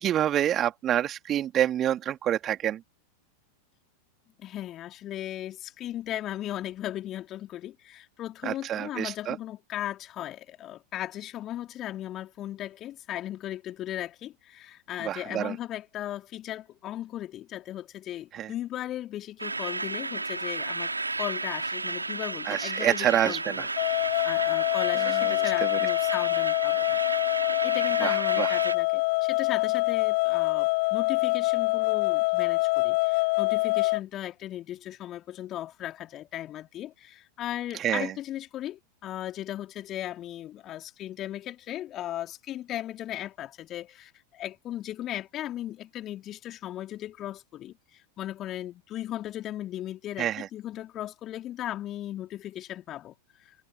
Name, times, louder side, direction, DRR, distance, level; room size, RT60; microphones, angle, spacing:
voice 1, 0.0-2.8 8.4-9.4 15.0-15.5 18.3-18.5 22.4-23.6 25.0-25.8 28.0-28.5 37.8-38.1 50.2-50.5, right 11 dB, 30° right, 3.1 m, -27 dB
voice 2, 4.4-20.9 21.2-27.0 27.6-53.5, left 13 dB, 30° left, 3.6 m, -37 dB
sound 1, 19.4-28.8, right 3 dB, 80° right, 2.4 m, -33 dB
sound 2, 23.8-34.0, left 26 dB, 50° left, 0.8 m, -25 dB
figure-of-eight pair, 90°, 0 cm